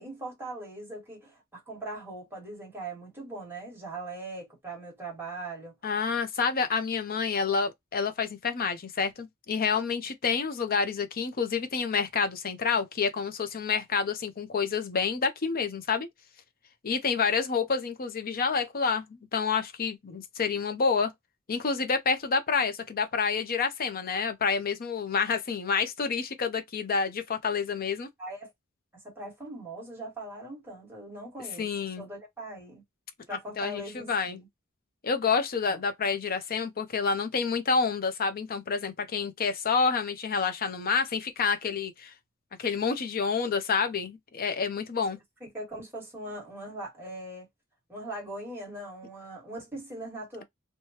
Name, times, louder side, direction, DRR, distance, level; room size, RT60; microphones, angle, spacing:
voice 1, 0.0-5.7 28.2-28.5 29.0-31.7 32.0-32.8 33.3-34.5 35.7-35.8 45.4-47.5 47.9-50.4, right 2 dB, 10° right, 1.5 m, -40 dB
voice 2, 5.8-16.1 16.8-21.1 21.5-28.1 31.6-32.0 33.6-34.4 35.0-42.1 42.6-45.2, left 5 dB, 45° left, 0.6 m, -28 dB
3.1 x 2.2 x 2.8 m
head